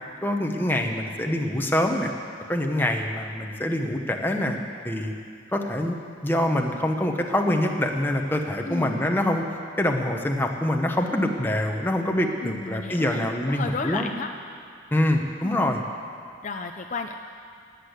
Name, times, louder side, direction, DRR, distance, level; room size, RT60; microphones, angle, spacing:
voice 1, 0.2-2.1 2.5-4.6 4.8-5.1 5.5-6.0 6.2-9.4 9.8-14.1 14.9-15.8, left 1 dB, 10° left, 2 dB, 1.1 m, -25 dB
voice 2, 8.6-9.2 12.4-14.3 15.4-15.6 16.4-17.1, left 4 dB, 40° left, 5 dB, 0.5 m, -33 dB
19.0 x 8.4 x 8.2 m, 2.4 s
head